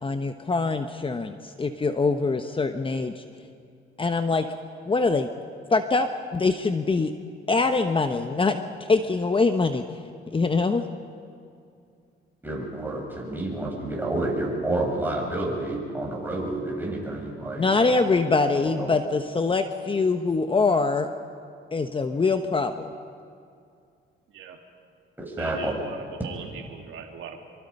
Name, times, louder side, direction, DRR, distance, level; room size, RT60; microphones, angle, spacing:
voice 1, 0.0-3.2 4.0-4.5 4.9-5.3 5.7-7.1 7.5-8.6 8.9-9.8 10.3-10.8 17.6-21.1 21.7-22.9, left 3 dB, 25° left, 8 dB, 1.0 m, -23 dB
voice 2, 12.4-17.7 18.6-18.9 25.2-25.7, right 2 dB, 10° right, -2 dB, 7.1 m, -29 dB
voice 3, 25.4-27.4, right 7 dB, 80° right, 3 dB, 2.2 m, -40 dB
25.5 x 25.0 x 5.5 m, 2.4 s
cardioid pair, 90°, 20 cm